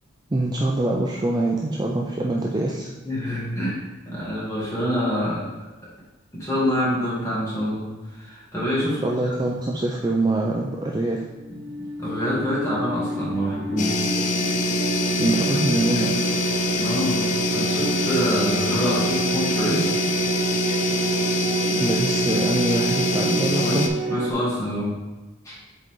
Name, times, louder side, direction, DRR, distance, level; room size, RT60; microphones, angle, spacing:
voice 1, 0.3-2.9 9.0-11.2 15.2-16.2 21.7-23.9, right 2 dB, 20° right, -1 dB, 0.4 m, -24 dB
voice 2, 3.1-5.5 6.3-7.8 8.1-9.3 11.5-11.6 12.0-14.0 16.8-17.2 17.5-19.9 23.6-23.8 24.1-24.9 25.4-25.6, equal, 15° left, -8 dB, 2.0 m, -26 dB
sound 1, 11.3-24.3, right 2 dB, 65° right, 0.6 m, -29 dB
Irritating flourescent light hum, 13.8-23.9, left 1 dB, 35° left, 0.5 m, -24 dB
7.5 x 3.9 x 3.7 m, 1.1 s
head